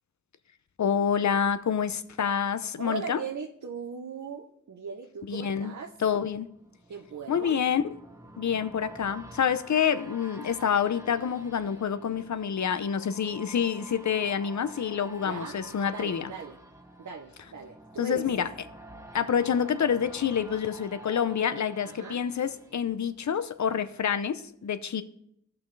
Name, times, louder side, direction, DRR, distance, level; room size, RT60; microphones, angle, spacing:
voice 1, 0.8-3.2 5.3-5.7 6.0-6.5 7.3-7.8 8.4-16.3 18.0-18.5 19.1-25.0, left 7 dB, 70° left, 12 dB, 0.7 m, -27 dB
voice 2, 2.8-5.9 6.9-7.6 15.2-15.6 15.9-16.6 17.0-18.3 21.8-22.2, right 5 dB, 75° right, 2 dB, 0.9 m, -38 dB
sound 1, 5.8-23.6 24.0-24.1, right 1 dB, 10° right, 0.9 m, -49 dB
14.5 x 5.9 x 3.3 m, 0.71 s
wide cardioid pair, 65°, 29 cm